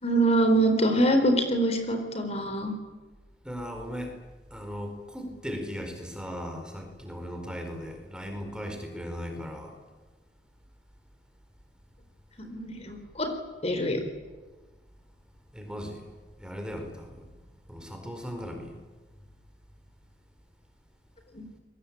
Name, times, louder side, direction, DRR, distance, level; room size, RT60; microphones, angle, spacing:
voice 1, 0.0-2.8 12.5-13.3 13.6-14.0 21.3-21.4, right 1 dB, 35° left, 6 dB, 4.2 m, -24 dB
voice 2, 3.4-4.1 4.5-9.7 15.5-16.0 16.4-17.2 17.7-18.8, equal, 5° right, 4 dB, 4.5 m, -37 dB
29.0 x 22.5 x 8.7 m, 1.2 s
head